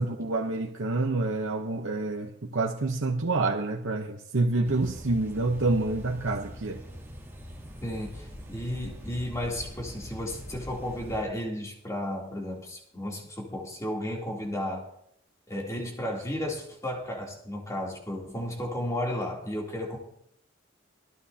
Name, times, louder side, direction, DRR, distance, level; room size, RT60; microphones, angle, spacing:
voice 1, 0.0-6.8, right 2 dB, 70° right, 0.9 m, -28 dB
sound 1, 4.6-11.2, equal, 10° right, 2.7 m, -43 dB
voice 2, 7.8-14.9 15.5-20.0, left 1 dB, 15° left, 3.1 m, -33 dB
25.5 x 9.4 x 2.9 m
head